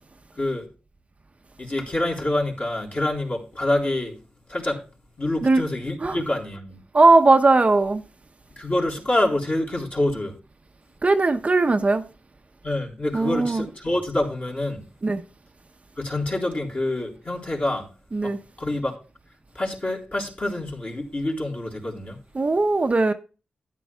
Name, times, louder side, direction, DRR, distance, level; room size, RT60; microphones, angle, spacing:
voice 1, 1.6-4.2 4.5-4.9 5.2-6.8 8.6-10.4 12.6-14.9 16.0-17.9 18.2-18.3 18.6-19.0 19.5-22.2, left 1 dB, 45° left, 3.7 m, -26 dB
voice 2, 6.9-8.0 11.0-12.0 13.1-13.7 15.0-15.2 18.1-18.4 22.3-23.1, right 3 dB, 40° right, 0.7 m, -18 dB
12.0 x 9.8 x 2.3 m
supercardioid pair, 45°, 3 cm